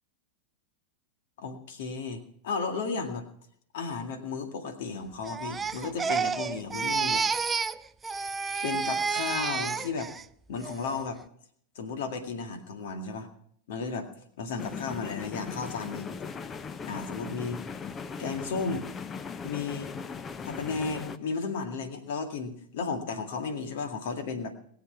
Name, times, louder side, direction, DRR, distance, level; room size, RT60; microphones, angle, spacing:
voice 1, 1.4-3.3 3.7-7.2 8.6-10.1 10.5-11.2 11.8-13.3 13.7-14.1 14.4-16.1 16.9-17.6 18.2-18.9 19.4-19.9 20.4-24.5, left 4 dB, 55° left, 6 dB, 2.1 m, -34 dB
Crying sobbing, 5.3-7.8 8.0-10.2 10.6-11.0, right 5 dB, 15° right, 0.4 m, -30 dB
sound 1, 14.6-21.2, left 5 dB, 20° left, 0.8 m, -39 dB
21.0 x 8.0 x 5.8 m, 0.65 s
figure-of-eight pair, 90°, 0 cm